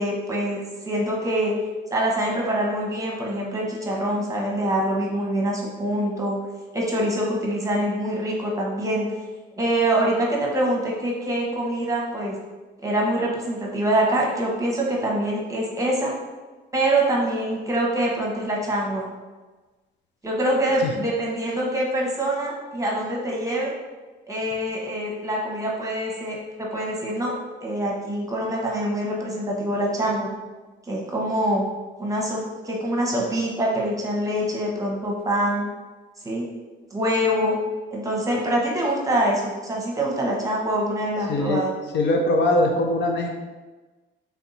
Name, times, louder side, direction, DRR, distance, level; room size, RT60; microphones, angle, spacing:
voice 1, 0.0-1.5 1.9-6.4 6.7-9.1 9.6-12.3 12.8-16.1 16.7-19.0 20.2-23.7 24.3-27.3 27.6-30.3 30.9-31.6 32.0-35.7 36.2-36.5 36.9-37.6 37.9-41.7, right 1 dB, 15° right, -2 dB, 1.1 m, -25 dB
voice 2, 41.3-41.6 41.9-43.3, left 1 dB, 60° left, 2 dB, 0.6 m, -21 dB
3.4 x 2.7 x 4.0 m, 1.2 s
cardioid pair, 90°, 20 cm